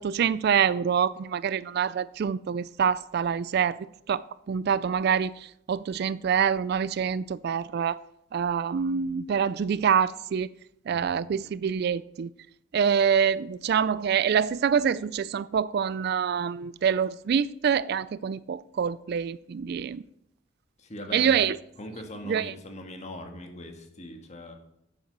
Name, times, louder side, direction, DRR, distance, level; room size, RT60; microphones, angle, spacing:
voice 1, 0.0-3.8 4.1-5.3 5.7-8.0 8.3-10.5 10.9-12.3 12.7-20.0 21.1-21.6 22.3-22.5, right 7 dB, 55° right, 0.3 m, -26 dB
voice 2, 20.8-21.4 21.8-24.5, left 1 dB, 35° left, 1.7 m, -41 dB
8.7 x 8.2 x 6.7 m
head